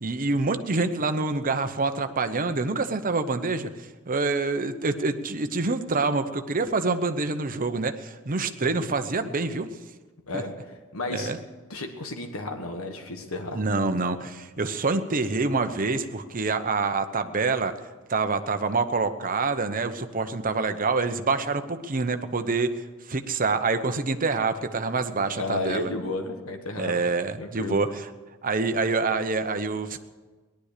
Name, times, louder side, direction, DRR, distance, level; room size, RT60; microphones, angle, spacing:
voice 1, 0.0-9.7 10.3-10.4 11.1-11.4 13.5-17.7 18.1-22.7 23.1-25.9 26.7-28.1 28.4-30.0, right 3 dB, 40° right, 8 dB, 0.9 m, -26 dB
voice 2, 10.9-11.3 11.7-13.6 25.4-27.0 27.4-27.8, left 2 dB, 80° left, 4 dB, 1.5 m, -32 dB
18.0 x 11.5 x 6.7 m, 1.3 s
head